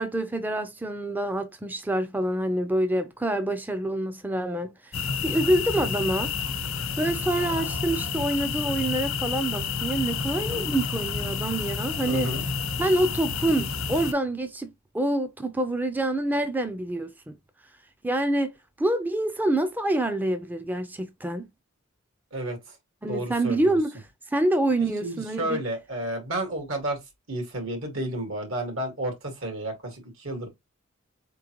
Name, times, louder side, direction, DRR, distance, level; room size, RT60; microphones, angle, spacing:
voice 1, 0.0-6.3 7.0-12.3 12.8-17.3 18.0-18.5 18.8-21.5 23.0-23.9 24.3-25.6, right 1 dB, 10° right, 0.4 m, -26 dB
sound 1, 4.9-14.1, left 5 dB, 85° left, 0.9 m, -30 dB
voice 2, 10.3-10.7 12.1-12.4 22.3-22.7 23.1-23.8 25.0-27.0 27.3-30.5, right 1 dB, 75° right, 1.9 m, -31 dB
4.3 x 3.7 x 2.9 m
head